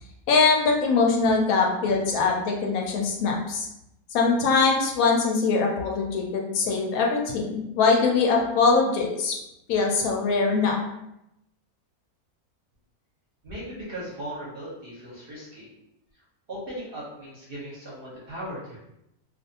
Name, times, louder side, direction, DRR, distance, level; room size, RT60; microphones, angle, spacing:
voice 1, 0.3-3.7 4.1-9.3 9.7-10.8, left 4 dB, 75° left, 0 dB, 1.0 m, -22 dB
voice 2, 13.4-15.7 16.5-18.8, right 1 dB, 50° right, -6 dB, 0.7 m, -37 dB
2.5 x 2.3 x 2.7 m, 0.85 s
omnidirectional pair, 1.6 m